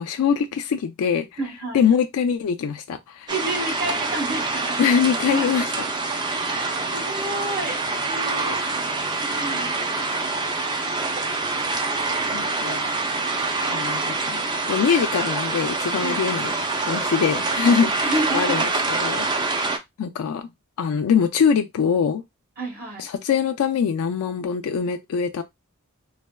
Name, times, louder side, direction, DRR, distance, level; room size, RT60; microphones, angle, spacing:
voice 1, 0.0-1.3 1.7-3.3 4.8-5.9 12.3-12.8 13.7-14.4 14.7-16.5 16.8-18.7 19.0-19.7 20.0-20.5 20.8-22.2 23.0-25.4, left 7 dB, 85° left, 0.3 m, -23 dB
voice 2, 1.4-1.9 3.3-4.8 5.2-5.5 6.4-8.6 9.2-10.3 16.0-16.1 17.6-18.5 22.6-23.1, right 2 dB, 40° right, 1.0 m, -31 dB
sound 1, 3.3-19.8, right 3 dB, 20° right, 0.4 m, -26 dB
3.3 x 2.0 x 2.2 m
head